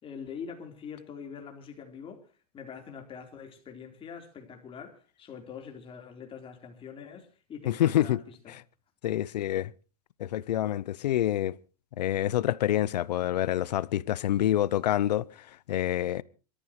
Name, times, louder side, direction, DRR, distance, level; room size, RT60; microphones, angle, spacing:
voice 1, 0.0-2.3 2.5-8.6, left 6 dB, 25° left, 3.9 m, -44 dB
voice 2, 7.7-8.2 9.0-9.7 10.2-11.5 12.0-15.3 15.7-16.2, left 12 dB, 85° left, 0.7 m, -27 dB
27.5 x 14.0 x 3.1 m
hypercardioid pair, 125°, 21 cm